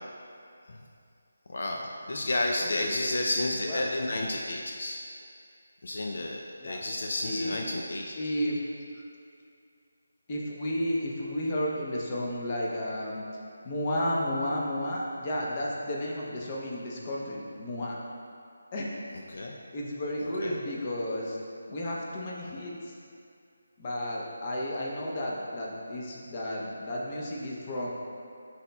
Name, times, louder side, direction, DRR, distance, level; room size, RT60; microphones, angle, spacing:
voice 1, 1.5-5.0 5.8-8.1 19.3-19.6 20.2-20.6, left 1 dB, 65° left, 0 dB, 0.4 m, -31 dB
voice 2, 2.6-3.3 3.7-3.9 6.6-6.8 7.2-7.6 8.2-8.6 10.3-13.2 13.6-18.0 18.7-18.8 19.7-21.4 21.7-22.9 23.8-27.9, left 1 dB, 30° left, -4 dB, 0.8 m, -32 dB
10.0 x 4.2 x 2.3 m, 2.4 s
figure-of-eight pair, 165°, 0 cm